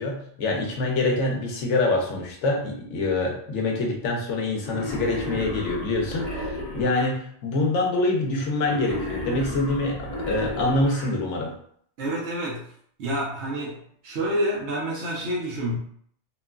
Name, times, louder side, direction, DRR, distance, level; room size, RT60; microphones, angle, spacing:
voice 1, 0.0-11.5, left 2 dB, 80° left, 0 dB, 1.0 m, -25 dB
Wild animals, 4.6-7.1 8.6-11.1, equal, 40° left, 1.1 m, -33 dB
voice 2, 12.0-12.7 13.0-13.8 14.0-15.8, equal, 70° right, -5 dB, 1.0 m, -28 dB
2.9 x 2.3 x 2.2 m, 0.63 s
omnidirectional pair, 1.2 m